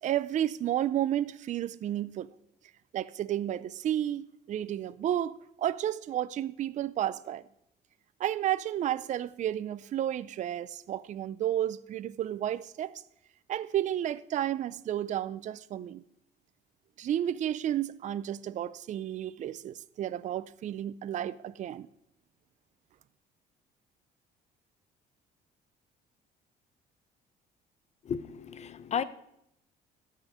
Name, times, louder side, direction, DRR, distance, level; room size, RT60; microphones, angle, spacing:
voice 1, 0.0-2.3 2.9-7.4 8.2-13.0 13.5-16.0 17.0-21.9, right 11 dB, 45° right, 0.5 m, -32 dB
voice 2, 28.0-29.0, left 7 dB, 40° left, 0.8 m, -33 dB
13.5 x 5.6 x 9.3 m
cardioid pair, 110°, 17 cm